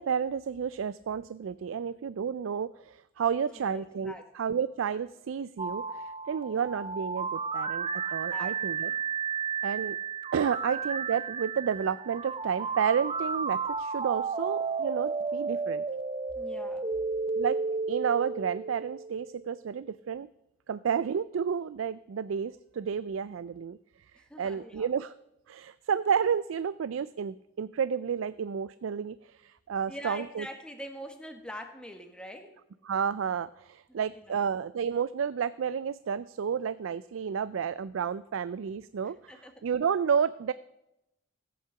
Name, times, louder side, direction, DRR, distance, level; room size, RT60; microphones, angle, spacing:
voice 1, 0.0-8.9 9.6-10.0 10.3-15.8 17.4-17.6 17.9-20.3 20.7-23.8 24.4-25.1 25.5-30.5 32.8-39.3 39.6-40.5, right 7 dB, 85° right, 17 dB, 0.4 m, -31 dB
voice 2, 3.5-4.2 8.3-9.0 10.7-10.8 16.3-16.8 24.2-24.9 29.9-32.5 33.9-34.4 39.3-39.5, equal, 5° left, 4 dB, 1.6 m, -44 dB
sound 1, 5.6-19.4, right 5 dB, 30° right, 0.7 m, -33 dB
15.5 x 8.6 x 5.8 m, 0.89 s
head